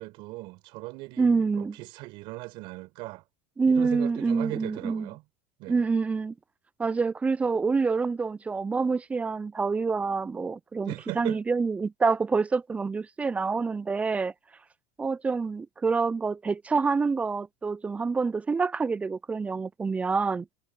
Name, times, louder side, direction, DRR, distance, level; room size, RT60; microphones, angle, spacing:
voice 1, 0.0-3.2 3.7-5.2 5.6-5.8 10.9-11.4, right 21 dB, 60° right, 5.3 m, -38 dB
voice 2, 1.2-1.8 3.6-5.1 5.7-6.3 6.8-14.3 15.0-20.5, right 4 dB, 15° right, 0.3 m, -27 dB
supercardioid pair, 110°, 9 cm